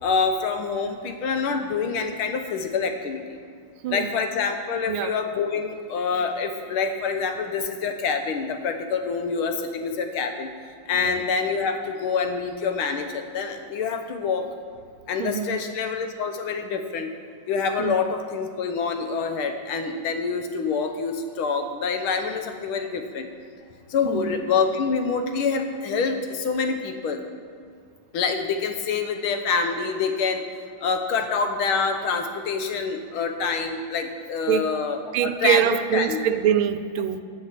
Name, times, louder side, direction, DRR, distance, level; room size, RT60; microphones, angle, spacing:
voice 1, 0.0-3.4 3.9-14.5 15.1-17.1 17.5-23.3 23.9-27.2 28.1-30.4 30.8-36.2, left 5 dB, 85° left, 6 dB, 1.8 m, -26 dB
voice 2, 3.8-4.2 4.9-5.1 11.0-11.2 15.2-15.5 17.8-17.9 24.0-24.3 34.5-34.7 35.1-37.2, right 10 dB, 80° right, 10 dB, 1.4 m, -24 dB
15.0 x 6.5 x 5.8 m, 2.2 s
omnidirectional pair, 2.2 m